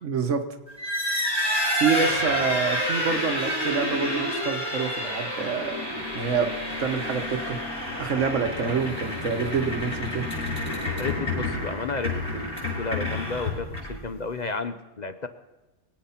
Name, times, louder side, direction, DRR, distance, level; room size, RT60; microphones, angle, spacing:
voice 1, 0.0-0.4 1.8-5.8 6.1-6.5 6.8-7.6 8.0-10.2, right 5 dB, 85° right, 7 dB, 1.5 m, -27 dB
sound 1, 0.7-14.1, left 1 dB, 60° left, 7.5 m, -29 dB
voice 2, 11.0-15.3, left 4 dB, 45° left, 9 dB, 0.8 m, -32 dB
22.5 x 8.7 x 5.8 m, 1.1 s
omnidirectional pair, 1.2 m